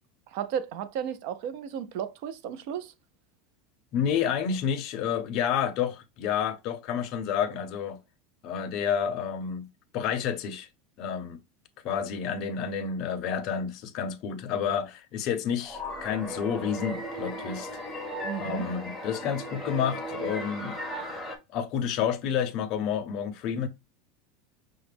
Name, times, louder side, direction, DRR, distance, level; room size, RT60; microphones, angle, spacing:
voice 1, 0.3-2.9 18.2-18.7, right 8 dB, 50° right, 0.5 m, -34 dB
voice 2, 3.9-8.0 8.4-9.7 9.9-10.7 11.0-11.4 11.8-17.7 18.4-20.7 21.5-23.7, left 8 dB, 35° left, 0.6 m, -29 dB
sound 1, 15.6-21.4, equal, ahead, 0.7 m, -36 dB
5.7 x 2.1 x 3.3 m
supercardioid pair, 175°, 0 cm